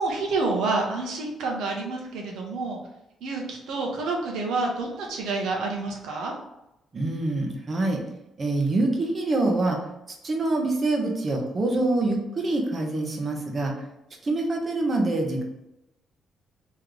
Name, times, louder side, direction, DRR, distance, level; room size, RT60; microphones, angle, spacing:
voice 1, 0.0-2.8 3.2-6.3, right 3 dB, 80° right, 0 dB, 1.1 m, -28 dB
voice 2, 6.9-8.0 8.4-9.8 10.2-13.7 14.2-15.4, right 2 dB, 40° right, 1 dB, 1.1 m, -25 dB
3.2 x 3.2 x 3.9 m, 0.89 s
cardioid pair, 90°, 0 cm